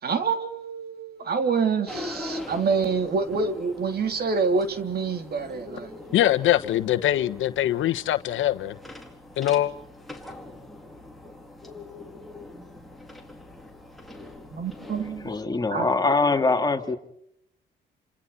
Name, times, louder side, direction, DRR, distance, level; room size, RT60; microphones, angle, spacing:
voice 1, 0.0-5.9 14.5-15.3 15.7-15.9, right 5 dB, 50° right, 3.4 m, -26 dB
sound 1, 1.9-15.4, left 2 dB, ahead, 4.1 m, -42 dB
voice 2, 6.1-8.8 9.4-9.7, left 13 dB, 80° left, 1.3 m, -23 dB
voice 3, 15.2-17.0, left 3 dB, 20° left, 3.3 m, -23 dB
29.5 x 27.5 x 4.3 m
cardioid pair, 90°, 20 cm